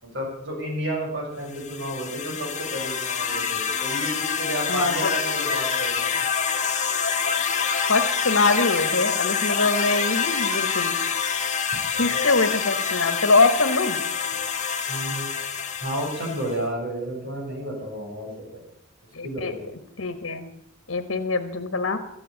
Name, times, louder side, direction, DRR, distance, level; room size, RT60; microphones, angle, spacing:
voice 1, 0.0-6.3 12.0-12.2 14.9-15.3 15.8-18.6 19.2-19.6, right 1 dB, 65° right, -1 dB, 6.1 m, -31 dB
sound 1, 1.5-16.6, left 6 dB, 35° left, 1.5 m, -26 dB
voice 2, 4.7-5.1 7.9-10.9 12.0-14.0 19.1-19.5 20.0-20.5 20.9-22.0, left 3 dB, 85° left, 8 dB, 1.3 m, -23 dB
13.5 x 10.0 x 8.2 m, 0.74 s
head